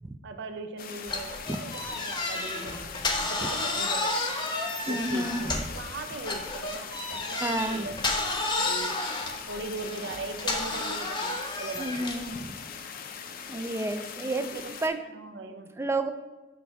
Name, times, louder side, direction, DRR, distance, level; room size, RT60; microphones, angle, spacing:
voice 1, 0.2-4.4 4.9-8.0 8.6-9.0 9.4-12.5 14.3-15.8, right 3 dB, 70° right, 7 dB, 0.6 m, -40 dB
sound 1, 0.8-14.9, left 7 dB, 50° left, 0.5 m, -41 dB
sound 2, 1.1-5.8 6.2-12.3, left 2 dB, 25° left, 0.8 m, -31 dB
voice 2, 4.9-5.6 7.4-7.9 11.8-12.6 13.5-15.0 15.8-16.1, right 2 dB, 15° right, 9 dB, 0.3 m, -31 dB
9.2 x 3.5 x 3.4 m, 1.2 s
head